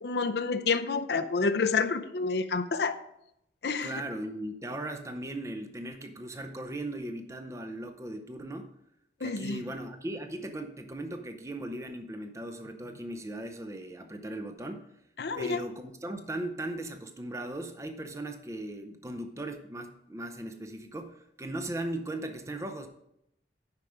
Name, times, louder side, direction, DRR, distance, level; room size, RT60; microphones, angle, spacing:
voice 1, 0.0-3.0 3.6-3.9 9.2-9.6 15.2-15.6, left 4 dB, 60° left, 9 dB, 0.6 m, -29 dB
voice 2, 3.8-8.7 9.2-14.9 15.3-22.9, right 1 dB, 15° right, 7 dB, 0.7 m, -38 dB
9.7 x 5.8 x 4.9 m, 0.80 s
head